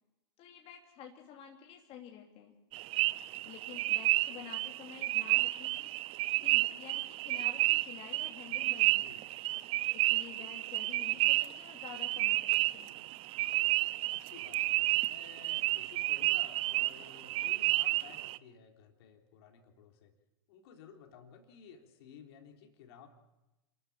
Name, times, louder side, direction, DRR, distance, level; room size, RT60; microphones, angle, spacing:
voice 1, 0.4-2.5 3.4-5.9 6.4-9.1 9.9-13.0, left 9 dB, 45° left, 1 dB, 2.8 m, -50 dB
sound 1, 2.7-18.4, right 18 dB, 40° right, 0.6 m, -31 dB
voice 2, 14.1-20.1 20.5-23.1, left 7 dB, 65° left, 3 dB, 3.4 m, -55 dB
28.0 x 13.0 x 7.4 m, 1.0 s
hypercardioid pair, 100°, 14 cm